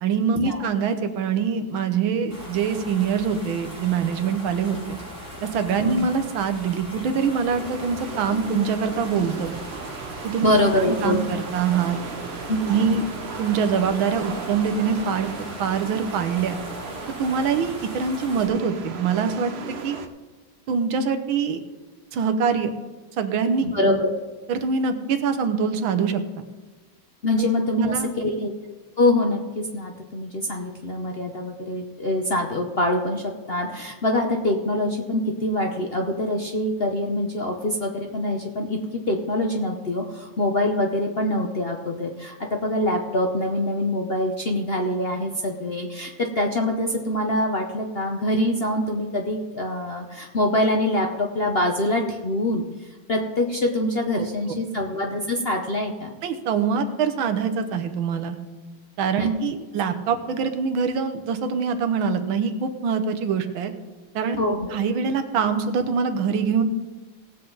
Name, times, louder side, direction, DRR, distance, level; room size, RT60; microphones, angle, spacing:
voice 1, 0.0-5.0 5.4-9.5 10.2-12.0 12.6-13.0 13.4-15.3 15.6-16.6 17.2-20.0 20.7-21.6 22.1-22.7 23.1-24.0 24.5-26.4 27.7-28.1 54.2-54.3 56.2-58.4 59.0-63.7 64.1-64.4 64.7-66.6, right 6 dB, 85° right, 9 dB, 1.7 m, -24 dB
sound 1, 2.3-18.5, equal, 10° left, 4.0 m, -39 dB
sound 2, 7.5-20.1, right 5 dB, 55° right, 0.7 m, -37 dB
voice 2, 10.4-11.2 12.5-12.6 12.9-13.0 23.6-24.1 27.2-28.5 29.0-56.2 59.2-59.3 64.4-64.7, left 1 dB, 50° left, 1 dB, 0.7 m, -24 dB
18.0 x 7.8 x 3.9 m, 1.3 s
omnidirectional pair, 2.1 m